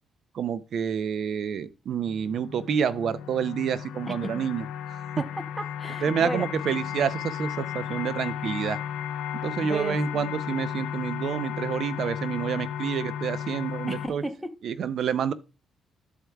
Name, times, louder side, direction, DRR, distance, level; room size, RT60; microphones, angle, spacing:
voice 1, 0.3-5.2 6.0-8.8 9.4-14.2 14.6-15.3, right 7 dB, 65° right, 0.5 m, -28 dB
sound 1, 2.0-14.1, left 9 dB, 90° left, 0.5 m, -34 dB
voice 2, 4.1-4.5 5.2-6.5 9.6-10.3 13.9-14.5, right 1 dB, 5° right, 0.8 m, -34 dB
12.5 x 4.6 x 2.3 m
cardioid pair, 90°, 0 cm